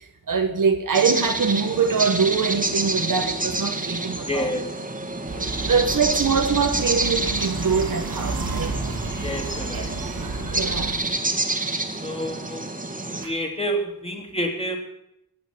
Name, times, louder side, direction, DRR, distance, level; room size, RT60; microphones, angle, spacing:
voice 1, 0.3-4.5 5.7-8.7 10.5-11.0 13.2-13.3, right 5 dB, 60° right, 1.4 m, -23 dB
sound 1, 0.9-13.2, right 2 dB, 20° right, 2.0 m, -28 dB
voice 2, 4.3-4.6 9.2-9.9 12.0-12.7 13.2-14.8, equal, 15° left, 3.0 m, -28 dB
sound 2, 5.3-10.9, right 3 dB, 80° right, 3.3 m, -31 dB
15.0 x 9.3 x 9.2 m
wide cardioid pair, 110°, 35 cm